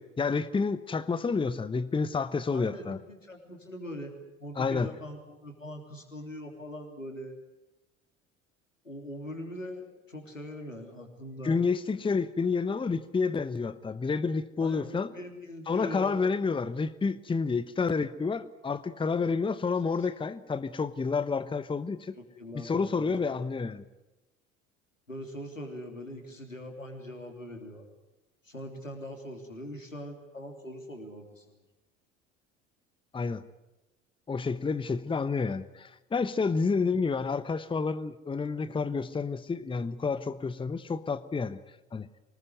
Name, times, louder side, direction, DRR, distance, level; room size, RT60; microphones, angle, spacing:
voice 1, 0.0-3.0 4.6-4.9 11.4-15.1 15.7-22.2 22.5-23.8 33.1-33.4 34.3-41.6 41.9-42.1, left 4 dB, 15° left, 15 dB, 1.0 m, -29 dB
voice 2, 2.5-7.4 8.8-11.6 14.6-16.2 22.2-23.4 25.1-27.8 28.4-31.4, equal, 90° left, 4 dB, 3.1 m, -42 dB
24.5 x 20.0 x 7.9 m, 0.99 s
figure-of-eight pair, 65°, 38 cm